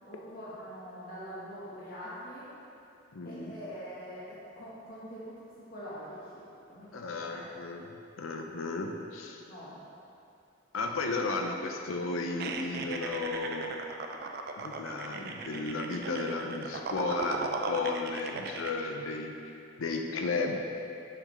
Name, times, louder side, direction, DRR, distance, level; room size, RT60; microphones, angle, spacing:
voice 1, 0.0-2.5 3.2-5.5 5.7-7.5 9.5-9.8, equal, 45° left, -9 dB, 1.1 m, -44 dB
voice 2, 3.1-3.5 6.9-7.9 8.2-9.4 10.7-13.7 14.6-20.6, left 3 dB, 85° left, 3 dB, 0.6 m, -34 dB
sound 1, 12.4-18.7, right 3 dB, 50° right, 0.4 m, -38 dB
6.8 x 5.8 x 3.1 m, 2.6 s
head